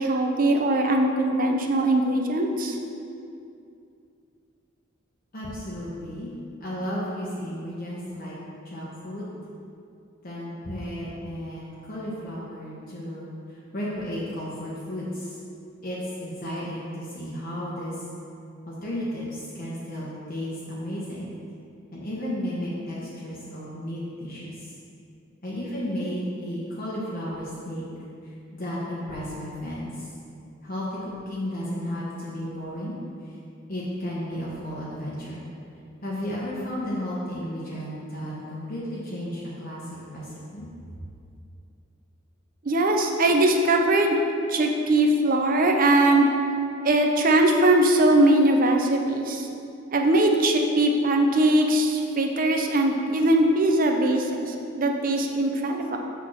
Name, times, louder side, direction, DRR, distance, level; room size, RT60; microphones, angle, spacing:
voice 1, 0.0-2.8 42.6-44.2 44.5-46.3 46.8-49.5 49.9-56.0, right 1 dB, 45° right, 3 dB, 0.6 m, -21 dB
voice 2, 5.3-6.3 6.6-8.3 8.6-9.2 10.2-15.4 15.8-18.0 18.7-21.3 21.9-24.7 25.4-27.8 28.2-30.1 30.6-33.0 33.2-33.3 33.7-35.4 36.0-39.8 40.1-40.7, equal, 45° left, -7 dB, 1.0 m, -33 dB
6.3 x 3.6 x 6.1 m, 2.5 s
head